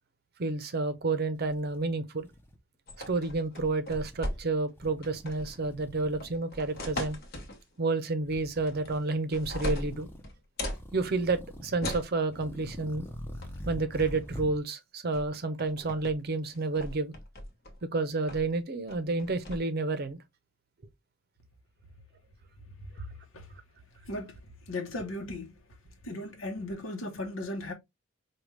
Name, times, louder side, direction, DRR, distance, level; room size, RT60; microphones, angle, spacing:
voice 1, 0.4-2.3 3.1-7.2 7.8-10.1 10.9-13.1 13.7-17.1 17.9-20.2, right 3 dB, 50° right, 0.6 m, -30 dB
sound 1, 1.0-1.1 1.4-2.6 2.9-3.4 3.8-4.4 4.7-6.4 6.7-7.2 8.2-9.0 9.4-10.3 10.7-11.9 12.3-14.6, equal, 10° left, 0.6 m, -45 dB
sound 2, 2.9-4.7 5.0-5.6 6.2-7.6 8.7-9.0 9.3-10.8 11.8-12.1 13.4-13.6 13.9-14.3 15.1-15.3 15.6-16.1 16.5-17.8 18.3-18.6 18.9-19.6, left 1 dB, 50° left, 1.1 m, -38 dB
voice 2, 24.1-24.4 24.7-25.6 26.0-27.7, left 1 dB, 75° left, 0.9 m, -36 dB
4.9 x 2.3 x 3.1 m
head